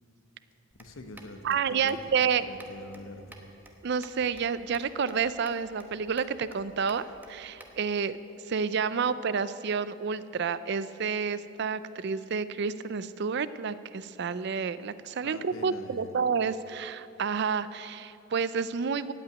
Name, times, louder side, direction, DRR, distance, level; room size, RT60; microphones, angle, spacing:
sound 1, 0.7-7.8, right 1 dB, 10° right, 1.0 m, -53 dB
voice 1, 0.8-3.4 15.2-16.2, left 1 dB, 85° left, 7 dB, 1.1 m, -45 dB
voice 2, 1.4-2.5 3.8-8.2 8.5-19.1, right 6 dB, 55° right, 15 dB, 0.4 m, -29 dB
16.5 x 5.9 x 9.2 m, 2.8 s
head